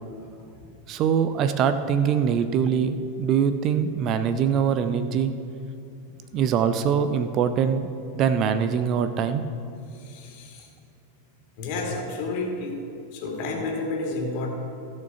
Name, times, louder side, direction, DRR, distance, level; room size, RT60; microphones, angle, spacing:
voice 1, 0.9-5.3 6.3-9.4, right 7 dB, 35° right, 10 dB, 0.6 m, -23 dB
voice 2, 10.0-10.6 11.6-12.7 13.1-14.5, left 3 dB, 45° left, 0 dB, 2.6 m, -30 dB
15.5 x 6.5 x 5.9 m, 2.6 s
figure-of-eight pair, 90°, 0 cm